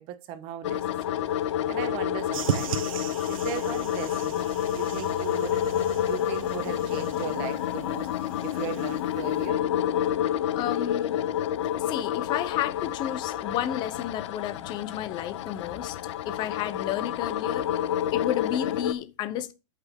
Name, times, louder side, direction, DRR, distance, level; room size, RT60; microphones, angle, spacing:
voice 1, 0.0-2.8 3.3-4.4 4.7-9.7, right 12 dB, 35° right, 1.1 m, -38 dB
sound 1, 0.6-18.9, left 10 dB, 60° left, 0.8 m, -29 dB
sound 2, 2.3-9.5, right 9 dB, 85° right, 1.0 m, -37 dB
voice 2, 10.6-11.2 11.8-16.0 16.2-19.5, left 11 dB, 25° left, 0.9 m, -32 dB
13.5 x 5.8 x 3.6 m
supercardioid pair, 155°, 17 cm